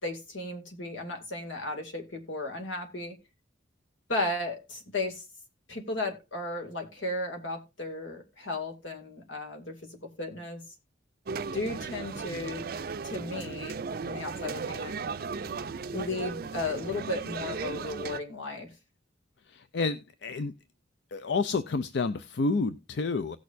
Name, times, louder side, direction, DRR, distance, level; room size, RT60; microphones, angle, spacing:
voice 1, 0.0-3.1 4.1-5.2 5.7-10.6 11.5-12.7 13.0-15.0 15.9-18.7, left 2 dB, 85° left, 2.4 m, -35 dB
sound 1, 11.3-18.2, right 5 dB, 50° right, 0.4 m, -36 dB
voice 2, 19.5-20.5 21.1-23.4, left 3 dB, 60° left, 0.5 m, -29 dB
17.0 x 6.4 x 2.6 m
head